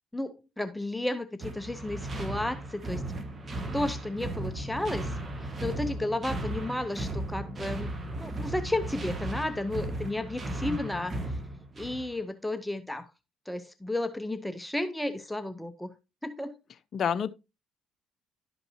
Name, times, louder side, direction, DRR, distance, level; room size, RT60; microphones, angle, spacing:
voice 1, 0.1-3.0 3.7-5.1 5.6-7.9 8.2-11.1 11.8-13.1 13.5-15.9 16.2-16.6, left 1 dB, 5° left, 0.7 m, -33 dB
sound 1, 1.4-12.2, right 1 dB, 35° right, 1.2 m, -36 dB
voice 2, 10.6-11.1 16.9-17.3, left 7 dB, 50° left, 0.5 m, -31 dB
11.5 x 5.2 x 2.8 m
hypercardioid pair, 60°, 0 cm